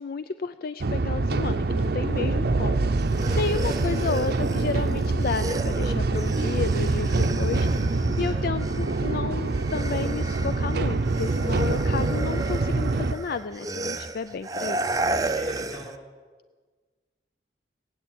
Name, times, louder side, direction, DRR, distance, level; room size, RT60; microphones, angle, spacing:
voice 1, 0.0-2.9 3.4-15.0, left 5 dB, 55° left, 12 dB, 0.4 m, -32 dB
sound 1, 0.8-13.1, right 3 dB, 60° right, 0.6 m, -25 dB
sound 2, 2.9-9.2 9.4-16.0, right 2 dB, 20° right, 0.5 m, -33 dB
voice 2, 15.1-16.0, equal, 25° left, -4 dB, 6.3 m, -42 dB
18.0 x 8.1 x 8.7 m, 1.4 s
head